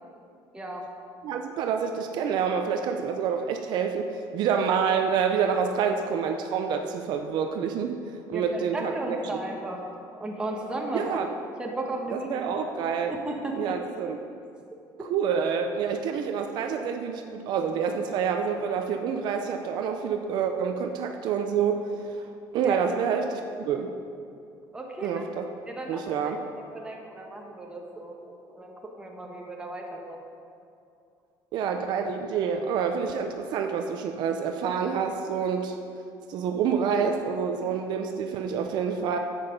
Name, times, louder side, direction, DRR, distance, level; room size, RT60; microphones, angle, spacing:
voice 1, 0.5-0.9 8.3-9.8 10.1-11.2 11.6-12.6 13.1-13.8 22.6-22.8 24.7-25.3 25.7-30.2, right 2 dB, 10° right, 0 dB, 1.2 m, -35 dB
voice 2, 1.2-8.0 8.3-9.2 10.9-11.3 12.1-13.1 13.6-14.2 15.0-22.2 22.5-23.4 23.7-23.9 25.0-25.4 25.9-26.4 31.5-35.8 36.3-39.2, right 6 dB, 60° right, 5 dB, 0.6 m, -27 dB
9.6 x 8.0 x 5.2 m, 2.4 s
cardioid pair, 160°, 8 cm